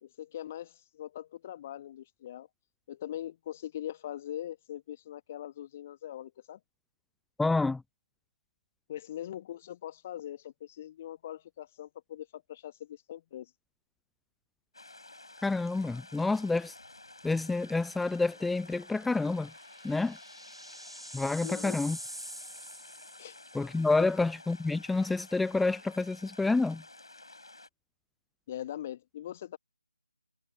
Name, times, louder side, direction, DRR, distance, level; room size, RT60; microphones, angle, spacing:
voice 1, 0.0-2.5 2.9-6.6 8.9-13.5 21.4-21.8 23.2-23.4 28.5-29.6, left 11 dB, 20° left, 1.5 m, -41 dB
voice 2, 7.4-7.8 15.4-16.8 17.2-19.5 19.8-20.2 21.1-22.0 23.5-26.8, left 3 dB, ahead, 0.4 m, -28 dB
sound 1, 14.7-27.7, left 2 dB, 65° left, 6.9 m, -52 dB
sound 2, 16.8-17.2 17.5-17.6 19.0-23.7, equal, 90° right, 4.4 m, -46 dB
figure-of-eight pair, 155°, 3 cm